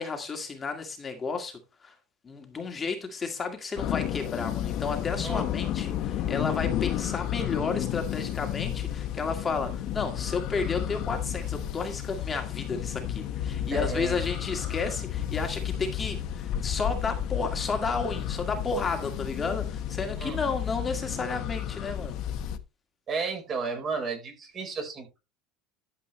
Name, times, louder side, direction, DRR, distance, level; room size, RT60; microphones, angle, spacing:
voice 1, 0.0-2.0 2.2-22.2, left 4 dB, 20° left, 1.9 m, -32 dB
sound 1, 3.8-22.6, left 11 dB, 50° left, 1.2 m, -32 dB
voice 2, 13.7-14.2 20.2-20.4 23.1-25.2, right 4 dB, 30° right, 4.4 m, -33 dB
12.5 x 7.6 x 3.1 m
supercardioid pair, 140°, 0 cm